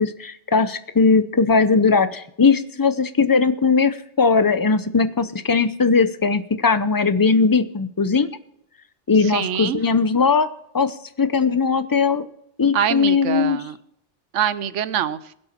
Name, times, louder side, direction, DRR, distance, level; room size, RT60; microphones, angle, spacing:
voice 1, 0.0-8.3 9.1-12.2 12.6-13.6, left 4 dB, 25° left, 13 dB, 0.5 m, -19 dB
voice 2, 9.2-9.8 12.7-13.8 14.3-15.3, right 9 dB, 80° right, 16 dB, 1.0 m, -24 dB
21.0 x 7.9 x 4.4 m, 0.73 s
omnidirectional pair, 1.2 m